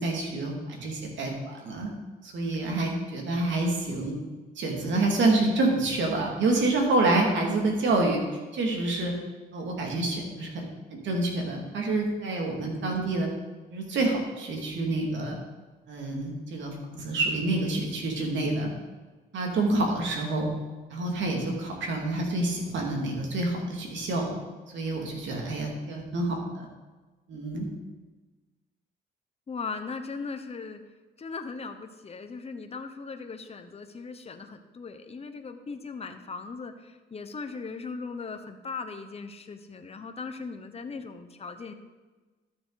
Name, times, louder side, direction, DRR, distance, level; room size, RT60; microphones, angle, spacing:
voice 1, 0.0-1.9 2.2-4.1 4.6-8.2 8.5-9.1 9.5-10.6 10.9-13.3 13.7-15.4 15.9-18.7 19.3-20.5 20.9-24.4 24.7-26.7 27.3-27.7, right 2 dB, 70° right, 0 dB, 2.5 m, -27 dB
voice 2, 29.5-30.8 31.2-41.7, left 4 dB, 30° left, 7 dB, 1.0 m, -38 dB
12.5 x 6.8 x 4.1 m, 1.2 s
cardioid pair, 90°, 20 cm